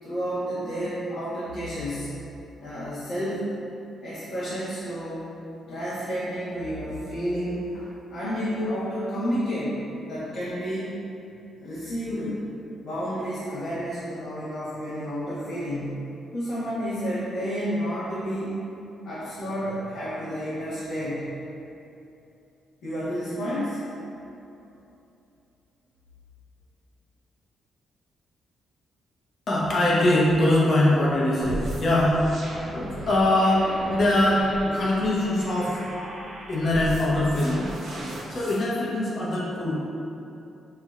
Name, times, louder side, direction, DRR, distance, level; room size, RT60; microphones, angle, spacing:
voice 1, 0.0-2.1 2.6-3.5 4.0-5.3 5.7-11.0 11.6-12.4 12.8-16.0 16.3-18.6 19.0-21.3 22.8-23.8, equal, 80° left, -13 dB, 1.1 m, -30 dB
voice 2, 29.5-32.2 32.7-34.4 34.7-35.9 36.5-37.7 38.3-39.8, left 1 dB, 50° left, -6 dB, 1.0 m, -22 dB
sound 1, 31.4-38.6, right 1 dB, 75° right, 1.1 m, -36 dB
5.6 x 2.9 x 2.4 m, 2.8 s
cardioid pair, 95°, 0 cm